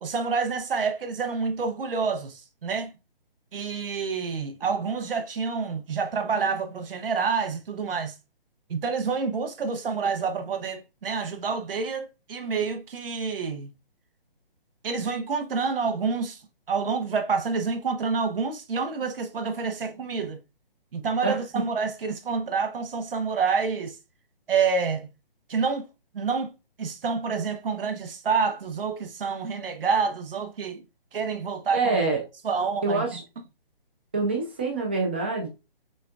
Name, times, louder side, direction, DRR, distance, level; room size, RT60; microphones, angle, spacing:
voice 1, 0.0-2.9 3.5-8.1 8.7-13.7 14.8-16.4 16.7-20.4 20.9-24.0 24.5-25.1 25.5-25.9 26.1-26.5 26.8-30.8 31.1-32.0 32.4-33.0, right 5 dB, 70° right, 0.8 m, -28 dB
voice 2, 21.2-21.6 31.7-32.2 32.8-33.2 34.1-35.5, right 3 dB, 10° right, 0.4 m, -26 dB
6.4 x 2.3 x 2.4 m
hypercardioid pair, 155°, 29 cm